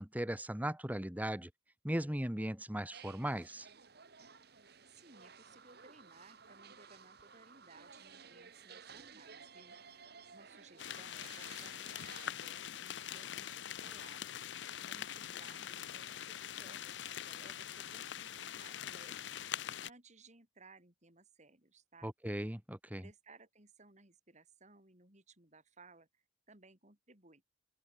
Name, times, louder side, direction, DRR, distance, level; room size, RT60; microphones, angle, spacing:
voice 1, 0.0-1.5 1.8-3.7 22.0-23.0, right 1 dB, 10° right, 1.8 m, -38 dB
sound 1, 2.9-12.3, right 6 dB, 60° right, 2.3 m, -56 dB
voice 2, 4.8-9.8 10.3-14.4 14.9-19.4 19.8-22.1 23.0-27.4, right 3 dB, 40° right, 7.5 m, -61 dB
sound 2, 10.8-19.9, left 10 dB, 75° left, 0.6 m, -44 dB
open air
head